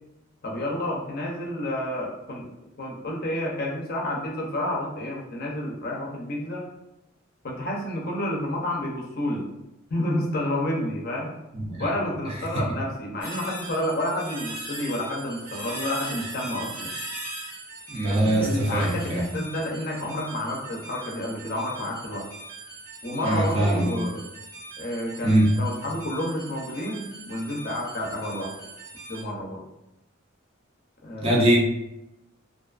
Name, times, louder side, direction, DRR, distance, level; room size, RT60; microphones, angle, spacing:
voice 1, 0.4-2.5 2.8-6.7 7.4-9.5 9.9-11.3 11.6-16.9 18.0-22.3 23.0-24.2 24.8-28.5 29.1-29.6 31.0-31.4, left 1 dB, 50° left, -2 dB, 0.5 m, -30 dB
voice 2, 11.5-11.9 12.5-12.6 17.9-19.3 23.2-23.9 25.2-25.5 31.2-31.6, right 1 dB, 30° right, -2 dB, 0.5 m, -22 dB
sound 1, 13.2-29.2, right 2 dB, 75° right, 1.1 m, -40 dB
2.5 x 2.3 x 2.3 m, 0.89 s
head